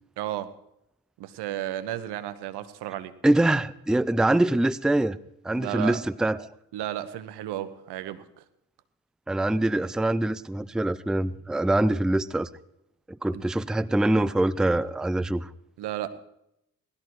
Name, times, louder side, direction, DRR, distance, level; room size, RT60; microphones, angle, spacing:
voice 1, 0.2-0.5 1.2-3.1 5.5-6.0 6.7-8.4 13.3-13.4 15.8-16.1, right 13 dB, 75° right, 12 dB, 1.3 m, -33 dB
voice 2, 3.2-5.2 5.4-6.5 9.3-12.5 13.1-15.5, right 1 dB, ahead, 16 dB, 0.6 m, -24 dB
19.0 x 13.0 x 4.7 m, 0.81 s
hypercardioid pair, 55°, 40 cm